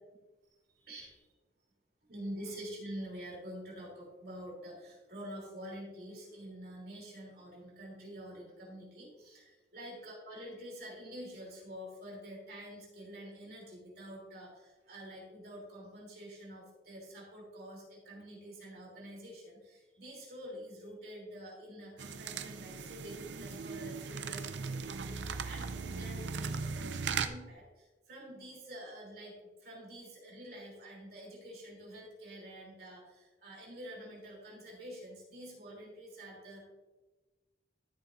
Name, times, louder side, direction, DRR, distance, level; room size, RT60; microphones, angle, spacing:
voice 1, 0.7-1.2 2.1-29.3 29.6-36.6, equal, 55° right, -2 dB, 3.1 m, -47 dB
sound 1, 22.0-27.3, right 5 dB, 80° right, 0.5 m, -38 dB
13.0 x 7.0 x 2.6 m, 1.2 s
head